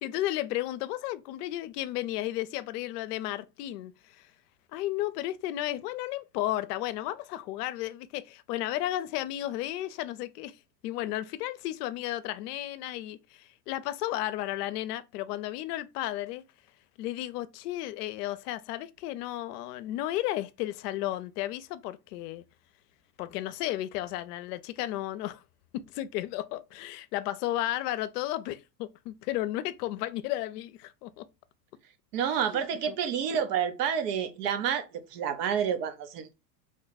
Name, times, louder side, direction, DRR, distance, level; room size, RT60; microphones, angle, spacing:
voice 1, 0.0-4.3 4.7-10.6 10.8-16.4 17.0-22.4 23.2-25.4 25.7-31.3 32.5-33.0, left 14 dB, 70° left, 0.6 m, -33 dB
voice 2, 32.1-36.3, right 8 dB, 70° right, 0.9 m, -29 dB
3.2 x 2.2 x 4.0 m
hypercardioid pair, 105°, 48 cm